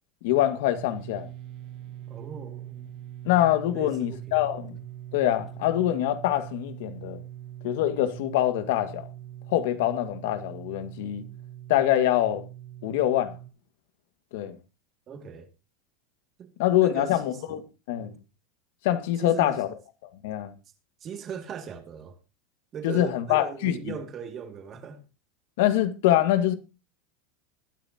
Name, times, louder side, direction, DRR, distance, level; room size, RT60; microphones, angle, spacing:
voice 1, 0.2-1.3 3.3-4.8 5.1-7.2 7.6-9.1 9.5-11.2 11.7-12.4 12.8-13.3 14.3-14.6 16.6-17.6 17.9-18.1 18.8-19.7 20.2-20.5 22.8-23.8 25.6-26.5, left 13 dB, 70° left, 1.9 m, -24 dB
sound 1, 0.7-13.5, right 12 dB, 45° right, 1.7 m, -42 dB
voice 2, 2.1-2.9 3.7-4.6 15.1-15.5 16.4-16.5 16.8-17.6 19.2-19.6 21.0-22.2 22.7-25.0, right 7 dB, 30° right, 2.3 m, -39 dB
21.0 x 9.4 x 2.9 m
supercardioid pair, 155°, 0 cm